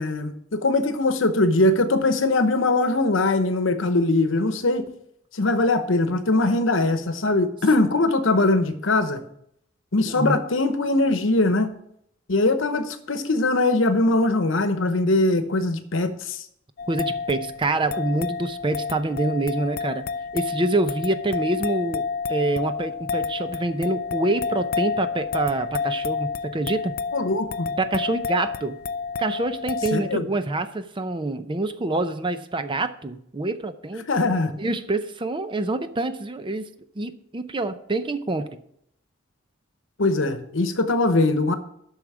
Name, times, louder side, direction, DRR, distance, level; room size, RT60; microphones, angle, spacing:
voice 1, 0.0-4.9 5.3-9.2 9.9-11.7 12.3-16.4 27.1-27.7 29.9-30.3 34.1-34.5 40.0-41.5, left 2 dB, 70° left, 10 dB, 1.0 m, -21 dB
voice 2, 10.0-10.4 16.9-20.0 20.3-22.0 22.3-26.9 27.8-28.8 29.2-34.1 34.6-36.7 37.0-38.6, right 2 dB, 25° right, 11 dB, 0.6 m, -26 dB
sound 1, 16.8-30.1, left 5 dB, 50° left, 0.4 m, -30 dB
8.3 x 6.3 x 7.3 m, 0.72 s
head